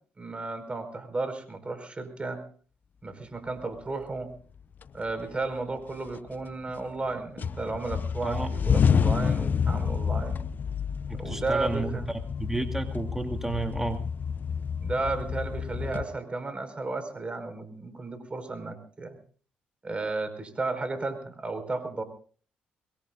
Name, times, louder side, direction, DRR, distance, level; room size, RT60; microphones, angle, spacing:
voice 1, 0.2-2.4 3.0-4.3 4.9-10.4 11.1-12.1 14.8-19.2 19.8-22.0, right 3 dB, 30° right, 8 dB, 4.8 m, -33 dB
sound 1, 4.2-4.3 4.8-5.5 5.9-7.1 7.4-16.1, left 6 dB, 50° left, 0.7 m, -29 dB
voice 2, 8.2-8.5 11.1-14.0, right 2 dB, 10° right, 5 dB, 2.7 m, -32 dB
23.5 x 22.0 x 2.5 m, 0.42 s
supercardioid pair, 55°, 4 cm